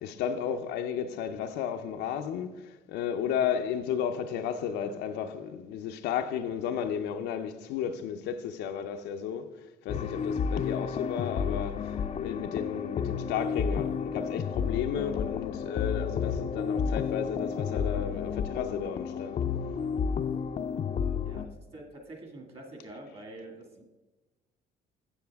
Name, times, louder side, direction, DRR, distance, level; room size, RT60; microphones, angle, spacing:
voice 1, 0.0-19.4, left 8 dB, 85° left, 0.6 m, -33 dB
sound 1, 9.9-21.4, left 7 dB, 40° left, 0.5 m, -31 dB
voice 2, 21.2-23.8, right 1 dB, 35° right, 1.9 m, -46 dB
9.0 x 7.2 x 3.5 m
cardioid pair, 110°, 17 cm